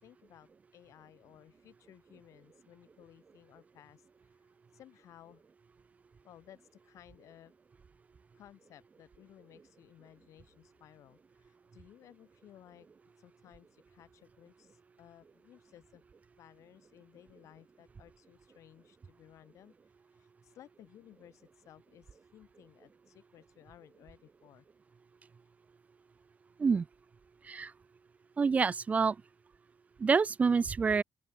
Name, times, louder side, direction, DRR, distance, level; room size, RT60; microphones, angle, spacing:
voice 1, 0.0-4.0 4.7-5.4 6.2-7.5 8.3-12.9 13.2-16.0 16.4-19.7 20.2-24.6, left 12 dB, 65° left, 5.1 m, -58 dB
voice 2, 28.4-29.2 30.0-31.0, right 5 dB, 25° right, 0.6 m, -27 dB
open air
cardioid pair, 140°, 6 cm